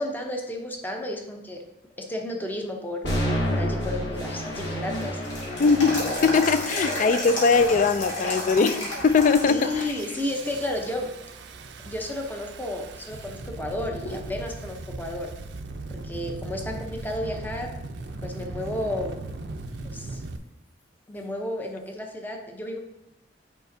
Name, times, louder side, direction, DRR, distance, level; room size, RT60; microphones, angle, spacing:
voice 1, 0.0-1.6 2.0-5.2 9.5-11.1 11.8-15.3 15.9-17.7 18.2-19.2 19.8-20.2 21.1-22.8, left 1 dB, 10° left, 2 dB, 0.7 m, -32 dB
sound 1, 3.0-11.1, equal, 70° left, 1.5 m, -32 dB
Engine starting, 4.0-4.1 4.8-5.2 5.9-6.2 6.5-7.1 7.5-8.1 8.4-8.7 9.0-20.4, right 2 dB, 65° right, 0.5 m, -39 dB
sound 2, 4.2-10.3 10.7-10.8 11.5-12.0 12.5-12.6 13.1-14.3 14.6-14.7 18.1-18.2 21.2-21.3, left 1 dB, 85° left, 2.1 m, -32 dB
voice 2, 5.6-9.8, left 5 dB, 45° left, 12 dB, 0.3 m, -21 dB
9.1 x 5.0 x 2.7 m, 0.89 s
head